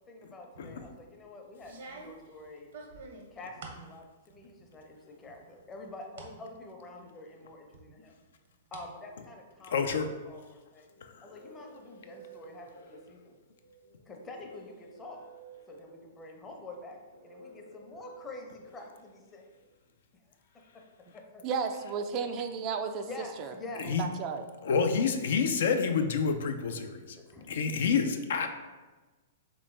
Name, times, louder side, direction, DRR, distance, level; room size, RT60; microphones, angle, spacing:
voice 1, 0.1-2.7 3.3-8.2 8.7-10.9 11.2-13.4 14.1-15.2 15.7-19.5 20.3-20.8 21.1-21.4 23.0-23.9 27.1-27.6, left 2 dB, 20° left, 2 dB, 0.6 m, -47 dB
sound 1, 0.5-1.0 1.6-3.9 4.3-4.9 5.2-6.3 6.8-6.9 7.7-8.9 9.2-10.0, right 3 dB, 65° right, 0.7 m, -48 dB
voice 2, 9.7-10.1 11.0-11.2 23.9-24.0 24.6-27.2 27.5-28.5, left 5 dB, 65° left, 6 dB, 0.3 m, -28 dB
sound 2, 10.9-19.6, right 4 dB, 80° right, 1.1 m, -53 dB
voice 3, 21.4-23.1 23.4-23.5 24.0-24.4, right 5 dB, 35° right, 6 dB, 0.3 m, -33 dB
3.3 x 3.0 x 3.2 m, 1.2 s
hypercardioid pair, 115°, 0 cm